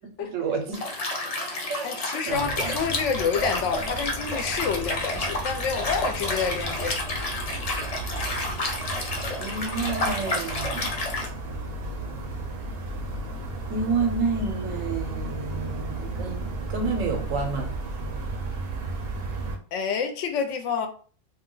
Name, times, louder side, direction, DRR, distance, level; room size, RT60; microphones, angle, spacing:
voice 1, 0.2-0.8 1.7-1.9 2.3-3.0 9.4-10.9 13.7-17.7, right 4 dB, 90° right, 1.1 m, -29 dB
Liquid, 0.7-11.3, left 2 dB, 45° left, 0.5 m, -30 dB
voice 2, 1.5-7.0 19.7-20.9, left 6 dB, 75° left, 0.9 m, -28 dB
sound 1, 2.3-19.6, right 2 dB, 60° right, 0.7 m, -34 dB
2.6 x 2.2 x 3.7 m
omnidirectional pair, 1.3 m